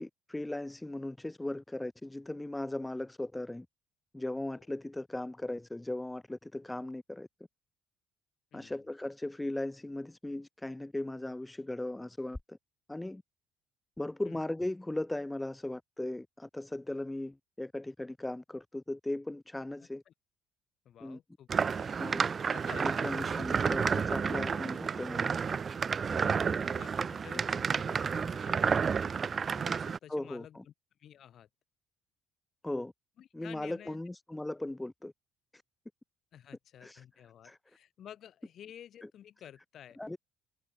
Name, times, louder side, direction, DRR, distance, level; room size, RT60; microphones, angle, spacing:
voice 1, 0.0-3.7 4.1-7.3 8.5-12.6 12.9-13.2 14.0-20.0 21.0-21.2 22.0-22.3 22.8-25.4 26.1-26.7 30.1-30.6 32.6-32.9 33.3-35.1 36.8-37.0 37.4-37.6 40.0-40.2, left 1 dB, 10° left, 2.6 m, -38 dB
voice 2, 8.5-8.8 14.2-14.4 20.1-20.2 20.8-21.9 22.5-23.0 23.3-23.4 26.2-29.1 29.5-30.7 31.0-31.5 33.2-34.0 36.3-40.0, left 10 dB, 55° left, 6.5 m, -52 dB
sound 1, 21.5-30.0, right 6 dB, 35° right, 0.4 m, -31 dB
cardioid pair, 110°, 0 cm